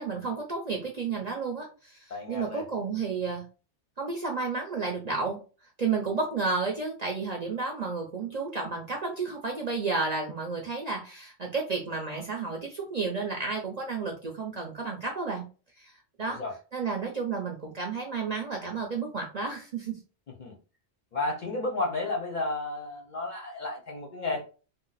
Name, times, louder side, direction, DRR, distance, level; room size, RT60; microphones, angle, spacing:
voice 1, 0.0-2.0 2.3-3.4 4.0-5.4 5.8-15.4 15.8-15.9 16.2-16.4 16.7-20.0, right 4 dB, 45° right, 0 dB, 0.6 m, -31 dB
voice 2, 2.1-2.6 16.3-16.5 20.4-20.6 21.1-24.4, left 2 dB, 50° left, 0 dB, 0.6 m, -32 dB
2.6 x 2.0 x 3.9 m, 0.34 s
omnidirectional pair, 1.2 m